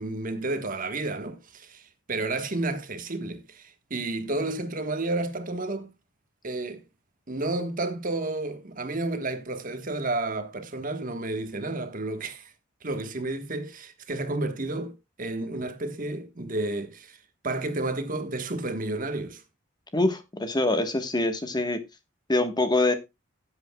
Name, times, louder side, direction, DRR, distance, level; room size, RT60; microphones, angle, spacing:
voice 1, 0.0-5.9 6.4-6.8 7.3-12.5 12.8-17.2 17.4-19.4, right 2 dB, 45° right, 1.3 m, -31 dB
voice 2, 19.9-21.8 22.3-22.9, left 2 dB, 20° left, 1.2 m, -24 dB
17.0 x 8.0 x 2.3 m
head